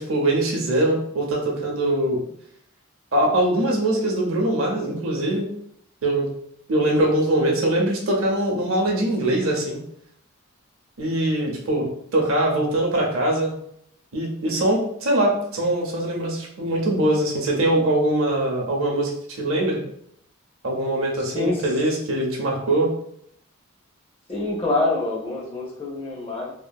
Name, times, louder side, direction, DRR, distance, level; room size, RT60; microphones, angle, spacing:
voice 1, 0.0-2.2 3.1-5.5 6.0-6.3 6.7-9.8 11.0-11.9 12.1-13.5 14.1-19.8 20.6-22.9, right 1 dB, 75° right, -1 dB, 0.7 m, -22 dB
voice 2, 21.2-21.7 24.3-26.5, left 2 dB, 25° left, -4 dB, 0.8 m, -26 dB
2.8 x 2.6 x 2.2 m, 0.69 s
head